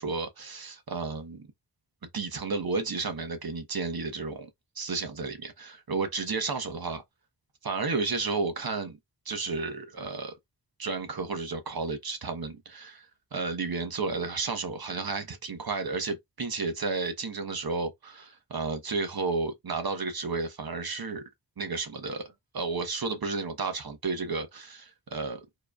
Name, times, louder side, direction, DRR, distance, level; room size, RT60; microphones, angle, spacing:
voice 1, 0.0-1.5 2.1-4.5 4.8-7.0 7.6-9.0 9.2-10.3 10.8-21.2 21.6-22.2 22.5-25.4, right 4 dB, 55° right, 1.2 m, -32 dB
4.6 x 3.2 x 2.4 m
cardioid pair, 45°, 43 cm